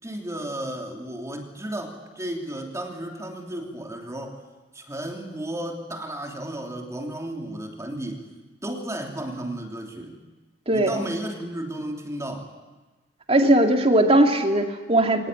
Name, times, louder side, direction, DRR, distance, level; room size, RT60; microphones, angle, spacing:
voice 1, 0.0-4.4 4.7-8.3 8.6-10.2 10.7-12.5, right 1 dB, 15° right, 2 dB, 3.2 m, -33 dB
voice 2, 13.3-15.3, right 1 dB, 35° right, 4 dB, 2.3 m, -19 dB
24.0 x 19.5 x 9.2 m, 1.2 s
head